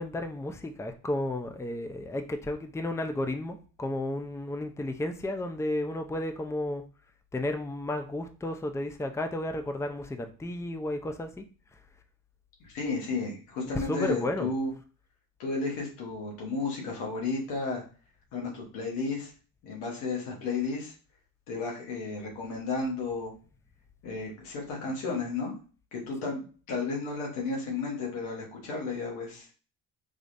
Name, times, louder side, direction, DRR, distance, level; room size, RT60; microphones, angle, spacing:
voice 1, 0.0-6.8 7.3-11.4 13.7-14.5, left 1 dB, 5° left, 7 dB, 0.6 m, -33 dB
voice 2, 12.6-14.7 15.4-17.8 18.3-19.3 19.6-20.9 21.5-23.3 24.0-25.5 25.9-29.5, left 3 dB, 85° left, -1 dB, 1.3 m, -33 dB
3.9 x 3.1 x 2.6 m, 0.37 s
hypercardioid pair, 45°, 47 cm